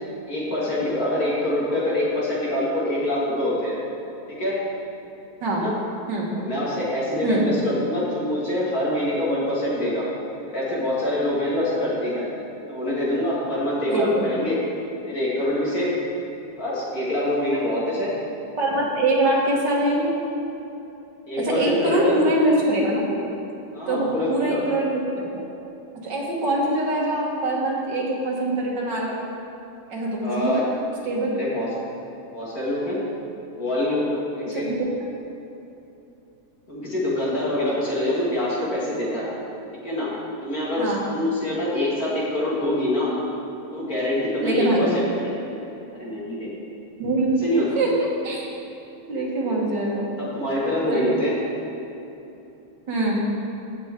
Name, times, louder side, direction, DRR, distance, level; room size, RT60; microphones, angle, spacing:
voice 1, 0.3-3.8 4.3-4.6 5.5-5.7 6.4-10.0 10.5-12.3 12.7-14.6 15.0-15.9 16.6-18.1 21.3-22.2 23.7-24.6 30.2-30.6 31.4-31.9 32.3-33.0 33.6-34.7 36.7-39.3 39.8-40.1 40.4-43.1 43.7-46.5 47.4-47.8 50.2-51.4, left 1 dB, 40° left, -7 dB, 2.7 m, -25 dB
voice 2, 13.9-14.3 18.6-20.1 21.4-23.3 23.9-25.4 26.0-29.2 29.9-30.6 31.0-31.3 34.5-34.8 40.8-41.0 44.4-45.1 47.0-47.9 48.2-48.5 49.1-50.1 50.9-51.1 52.9-53.2, right 1 dB, 55° right, -3 dB, 2.2 m, -23 dB
15.5 x 6.7 x 3.7 m, 2.9 s
omnidirectional pair, 2.4 m